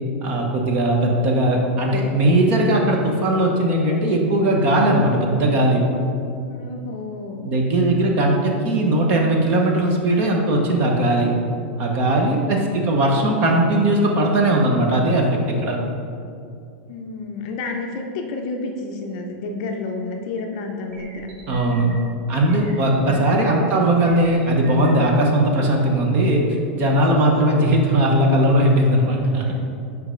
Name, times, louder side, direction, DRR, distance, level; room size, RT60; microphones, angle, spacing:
voice 1, 0.2-5.8 7.4-11.3 11.8-15.8 21.5-21.9 22.3-26.4 26.7-29.5, right 1 dB, 30° right, 0 dB, 0.8 m, -18 dB
voice 2, 6.5-8.0 12.2-12.6 16.9-21.3 29.5-29.7, left 3 dB, 40° left, 3 dB, 0.6 m, -31 dB
sound 1, 20.4-20.5 20.9-22.0 22.5-23.5 24.0-25.1, right 3 dB, 65° right, 1.2 m, -37 dB
5.2 x 4.7 x 5.1 m, 2.5 s
supercardioid pair, 175°, 6 cm